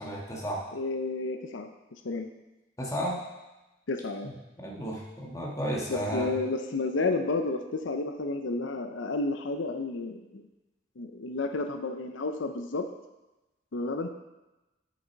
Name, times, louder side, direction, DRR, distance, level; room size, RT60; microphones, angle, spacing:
voice 1, 0.0-0.6 2.8-3.2 4.2-4.3 4.6-6.3, equal, 15° left, -3 dB, 1.6 m, -33 dB
voice 2, 0.7-1.7 2.0-2.3 3.9-4.3 5.9-10.4 11.0-12.9 13.7-14.1, left 3 dB, 90° left, 7 dB, 0.7 m, -31 dB
9.4 x 6.5 x 4.6 m, 1.0 s
head